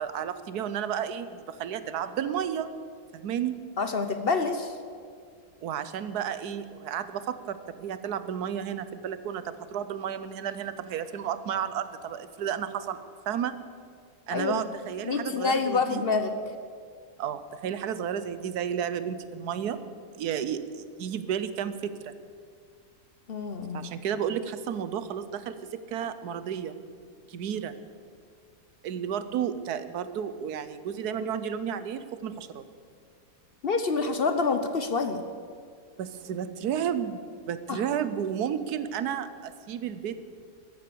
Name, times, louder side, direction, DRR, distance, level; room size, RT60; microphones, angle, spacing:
voice 1, 0.0-2.7 3.1-3.6 5.6-13.0 13.3-13.6 14.3-16.0 17.2-19.8 20.2-20.6 21.0-22.1 23.7-26.7 27.3-27.7 28.8-32.6 36.0-40.2, right 8 dB, 80° right, 12 dB, 1.3 m, -32 dB
voice 2, 3.8-4.7 14.3-14.6 15.0-16.3 23.3-23.9 33.6-35.2 37.7-37.8, left 4 dB, 50° left, 8 dB, 0.8 m, -27 dB
13.5 x 12.0 x 6.9 m, 2.2 s
omnidirectional pair, 1.7 m